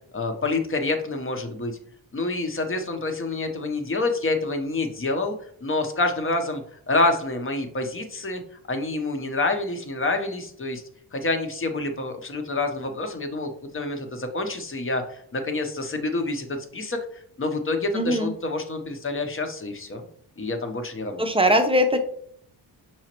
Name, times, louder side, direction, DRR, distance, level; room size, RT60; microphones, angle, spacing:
voice 1, 0.1-1.8 2.1-5.3 5.6-6.6 6.9-8.4 8.7-10.8 11.1-20.0 20.4-21.3, left 2 dB, 30° left, 5 dB, 0.8 m, -27 dB
voice 2, 17.9-18.3 21.2-22.0, equal, 15° right, 6 dB, 0.6 m, -20 dB
5.5 x 3.0 x 2.9 m, 0.63 s
cardioid pair, 85°, 44 cm